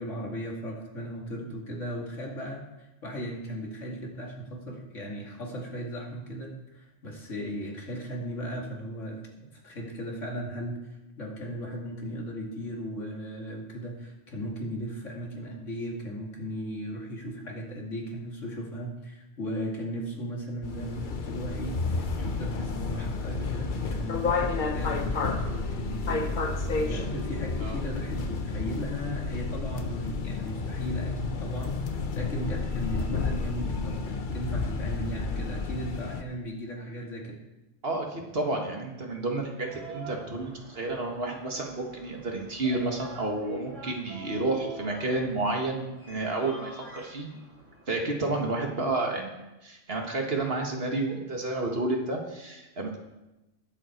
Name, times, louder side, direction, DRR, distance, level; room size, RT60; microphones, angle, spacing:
voice 1, 0.0-37.4, equal, 80° left, 0 dB, 2.7 m, -37 dB
sound 1, 20.6-36.2, left 4 dB, 45° left, 1.0 m, -31 dB
voice 2, 37.8-47.3 47.9-53.0, right 2 dB, 50° right, 1 dB, 2.1 m, -30 dB
sound 2, 39.6-47.9, right 3 dB, 75° right, 4.1 m, -46 dB
20.0 x 7.8 x 4.6 m, 0.99 s
omnidirectional pair, 1.3 m